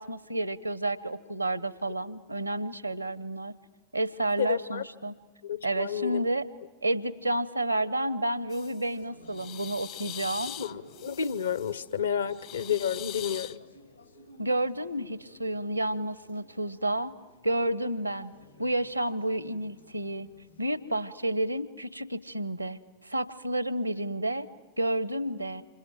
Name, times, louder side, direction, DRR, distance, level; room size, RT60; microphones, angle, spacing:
voice 1, 0.0-3.5 3.9-5.1 5.6-6.5 6.8-10.5 14.4-17.1 17.4-18.3 18.6-20.3 20.6-22.8 23.0-24.5 24.8-25.6, right 1 dB, 85° right, 19 dB, 0.9 m, -30 dB
voice 2, 4.4-4.8 5.4-6.2 10.6-13.6, left 8 dB, 70° left, 17 dB, 1.0 m, -30 dB
sound 1, 8.5-8.9 9.3-11.8 12.3-13.6, left 13 dB, 40° left, 0.8 m, -42 dB
sound 2, 8.9-20.7, left 1 dB, 90° left, 3.6 m, -56 dB
28.0 x 27.0 x 7.7 m, 1.3 s
figure-of-eight pair, 90°, 0 cm